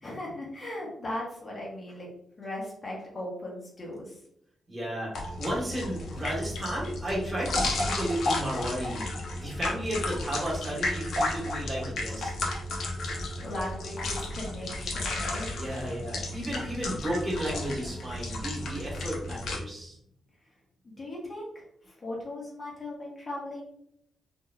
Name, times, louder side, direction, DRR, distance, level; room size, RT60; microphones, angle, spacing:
voice 1, 0.0-2.1 2.4-4.2 13.1-15.5 20.8-21.5 21.9-23.6, left 1 dB, 25° left, -3 dB, 1.0 m, -38 dB
voice 2, 4.7-12.3 15.5-20.0, equal, 15° right, -6 dB, 1.3 m, -33 dB
sound 1, 5.1-19.6, left 2 dB, 70° left, 0.7 m, -33 dB
3.4 x 2.9 x 2.2 m, 0.71 s
wide cardioid pair, 165°, 0 cm